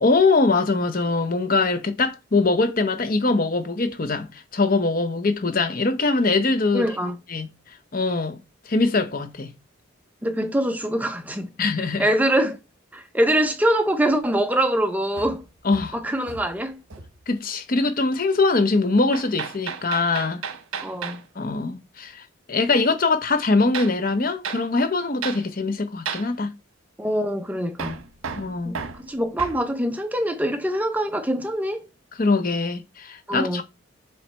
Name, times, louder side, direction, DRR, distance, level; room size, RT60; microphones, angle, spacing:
voice 1, 0.0-6.8 7.3-7.5 7.9-8.4 8.7-9.5 11.6-12.1 15.6-15.9 17.3-20.4 21.4-26.5 28.4-28.8 32.2-33.6, left 3 dB, 40° left, 0.7 m, -22 dB
voice 2, 6.7-7.2 10.2-11.5 12.0-12.6 12.9-15.4 15.9-16.8 20.8-21.2 27.0-28.0 28.6-31.8 33.3-33.6, right 1 dB, 10° right, 0.6 m, -24 dB
Hammer, 15.2-16.6 16.9-17.2 19.1-21.2 23.7-24.0 24.4-24.7 25.2-25.5 26.1-26.3 27.8-29.6, right 6 dB, 85° right, 0.9 m, -34 dB
7.2 x 3.2 x 4.3 m
head